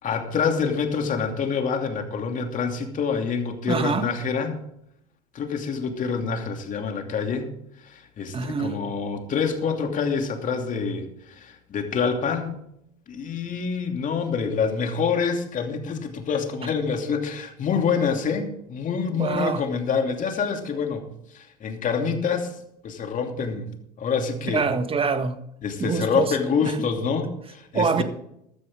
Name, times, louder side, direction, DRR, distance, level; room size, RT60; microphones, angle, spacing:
voice 1, 0.0-4.6 5.3-7.5 7.8-12.5 13.1-21.1 21.3-22.5 22.8-23.7 24.0-24.6 25.6-28.0, left 5 dB, 40° left, 4 dB, 2.8 m, -26 dB
voice 2, 3.7-4.1 8.3-8.8 19.2-19.6 24.5-25.4 25.8-26.3 26.6-26.8 27.7-28.0, right 5 dB, 25° right, 10 dB, 1.5 m, -25 dB
15.0 x 12.5 x 3.7 m, 0.75 s
hypercardioid pair, 75°, 21 cm